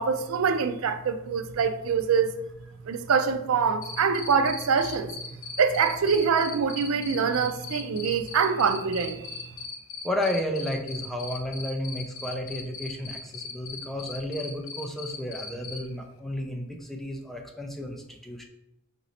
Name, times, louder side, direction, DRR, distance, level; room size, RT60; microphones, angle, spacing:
voice 1, 0.0-2.3 2.9-5.1 5.6-9.5, right 6 dB, 70° right, 0.4 m, -25 dB
Cricket, 3.8-15.8, left 5 dB, 75° left, 0.6 m, -38 dB
voice 2, 10.0-18.5, left 1 dB, ahead, 0.5 m, -32 dB
4.0 x 3.0 x 3.9 m
head